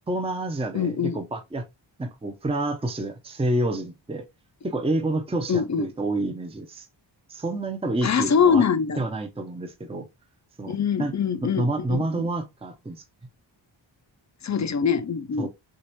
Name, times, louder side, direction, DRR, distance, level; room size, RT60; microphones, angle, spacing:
voice 1, 0.1-1.6 2.0-4.3 4.6-6.9 7.3-8.6 9.0-10.1 10.6-10.7 11.0-11.1 11.4-13.0 15.4-15.5, right 2 dB, 15° right, 0.6 m, -28 dB
voice 2, 0.7-1.2 5.5-5.9 8.0-9.0 10.7-12.3 14.4-15.5, left 6 dB, 40° left, 0.5 m, -23 dB
6.4 x 2.4 x 3.0 m
wide cardioid pair, 135°, 46 cm